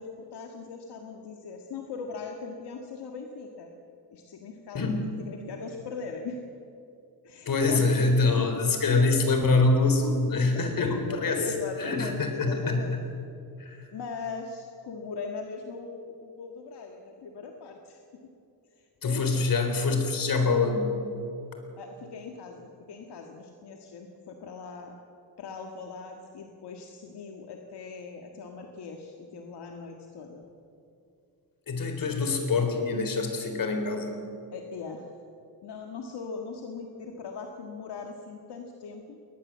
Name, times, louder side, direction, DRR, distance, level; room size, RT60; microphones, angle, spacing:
voice 1, 0.0-3.7 4.1-4.8 5.2-6.4 7.2-9.1 10.5-13.0 13.9-18.0 18.8-19.4 21.8-24.9 25.4-30.4 34.5-35.1 35.6-39.2, left 4 dB, 80° left, 2 dB, 1.9 m, -40 dB
voice 2, 4.7-5.0 7.5-11.4 11.8-12.8 13.6-13.8 19.0-20.9 31.7-34.1, left 3 dB, 55° left, 5 dB, 4.0 m, -25 dB
21.5 x 19.5 x 7.5 m, 2.6 s
cardioid pair, 110°, 39 cm